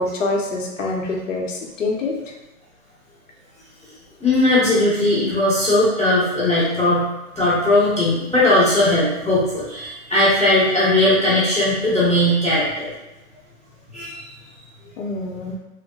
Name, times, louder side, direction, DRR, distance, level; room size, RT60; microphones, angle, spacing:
voice 1, 0.0-2.2 15.0-15.5, left 2 dB, 60° left, 0 dB, 0.6 m, -25 dB
voice 2, 4.2-7.1 7.3-12.9 13.9-14.3, left 1 dB, 5° right, -26 dB, 0.5 m, -18 dB
3.0 x 2.0 x 2.7 m, 0.99 s
hypercardioid pair, 175°, 44 cm